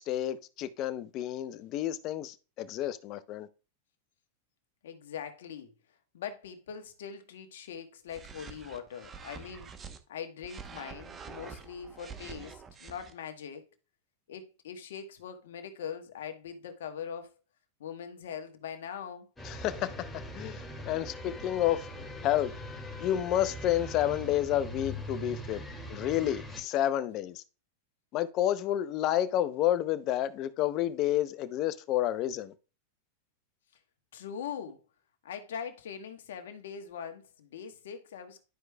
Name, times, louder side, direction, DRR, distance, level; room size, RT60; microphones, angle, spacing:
voice 1, 0.0-3.5 19.4-22.5 23.0-25.6 25.9-27.4 28.1-32.5, left 12 dB, 45° left, 0.6 m, -30 dB
voice 2, 4.8-5.7 6.1-13.7 14.3-17.3 17.8-19.3 34.1-34.8 35.2-38.4, left 7 dB, 75° left, 1.2 m, -42 dB
sound 1, 8.1-10.0 10.4-13.1, right 6 dB, 25° right, 0.9 m, -46 dB
sound 2, 19.4-26.6, equal, 10° left, 2.3 m, -41 dB
12.0 x 4.7 x 2.2 m
hypercardioid pair, 110°, 0 cm